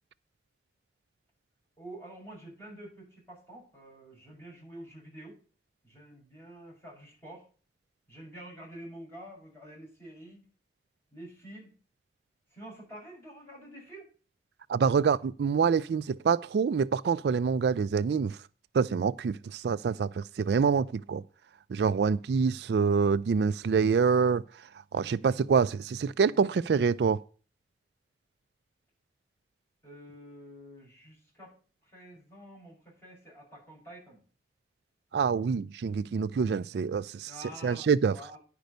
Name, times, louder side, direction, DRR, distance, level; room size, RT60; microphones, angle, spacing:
voice 1, 1.8-5.4 5.8-7.4 8.1-10.5 11.1-11.7 12.5-14.1 26.3-26.8 29.8-31.5 31.8-34.2 37.3-38.4, right 1 dB, 15° left, 6.2 m, -48 dB
voice 2, 14.7-18.4 18.7-21.2 21.7-24.4 24.9-27.2 35.1-37.3 37.6-38.2, right 5 dB, 75° right, 0.3 m, -26 dB
10.5 x 5.2 x 6.6 m
head